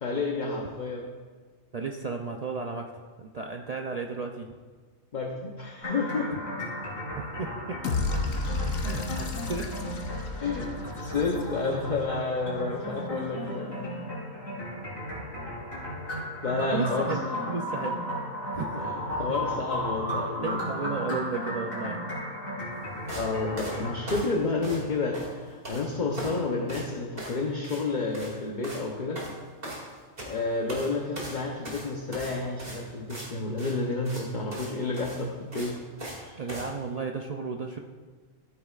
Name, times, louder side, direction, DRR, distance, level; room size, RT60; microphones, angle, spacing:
voice 1, 0.0-1.0 5.1-6.3 10.4-10.7 11.0-13.9 16.4-17.4 18.7-20.6 23.1-29.2 30.3-35.8 36.2-36.4, left 3 dB, 40° left, 0 dB, 0.9 m, -30 dB
voice 2, 1.7-4.5 6.3-6.4 7.2-7.8 8.1-8.2 8.7-9.7 16.7-18.1 18.5-19.0 20.4-22.1 36.4-37.8, right 4 dB, 65° right, 2 dB, 0.3 m, -34 dB
sound 1, 5.8-24.2, equal, 75° left, 3.8 m, -35 dB
sound 2, 7.8-12.0, left 3 dB, 90° left, 1.2 m, -32 dB
sound 3, 23.1-23.3 23.6-24.9 25.1-25.8 26.1-26.4 26.7-26.9 27.2-27.4 27.6-27.8 28.1-28.3 28.6-28.8 29.2-30.3 30.7-30.9 31.2-33.3 33.6-33.7 34.1-34.2 34.5-34.7 34.9-36.2 36.5-36.7, right 1 dB, 45° right, 2.5 m, -39 dB
13.5 x 9.1 x 2.4 m, 1.5 s
omnidirectional pair, 1.4 m